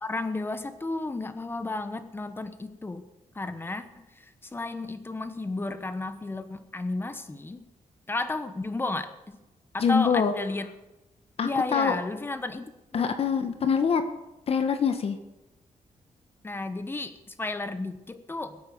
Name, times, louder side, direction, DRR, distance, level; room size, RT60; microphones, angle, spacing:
voice 1, 0.0-3.1 3.3-7.7 8.1-9.4 9.7-10.7 11.4-13.1 16.4-18.6, left 2 dB, 15° left, 11 dB, 1.1 m, -33 dB
voice 2, 9.8-10.3 11.4-12.0 12.9-14.0 14.5-15.2, left 6 dB, 50° left, 8 dB, 1.2 m, -24 dB
21.5 x 9.0 x 7.1 m, 0.97 s
wide cardioid pair, 175°, 13 cm